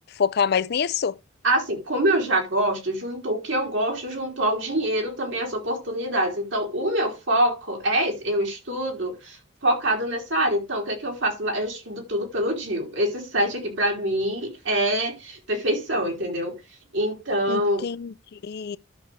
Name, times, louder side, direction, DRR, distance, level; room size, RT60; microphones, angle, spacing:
voice 1, 0.2-1.1 17.5-18.8, left 6 dB, 50° left, 0.4 m, -26 dB
voice 2, 1.4-9.4 9.6-16.6 16.9-17.9, right 1 dB, 65° right, 3.3 m, -25 dB
12.5 x 6.5 x 3.3 m
head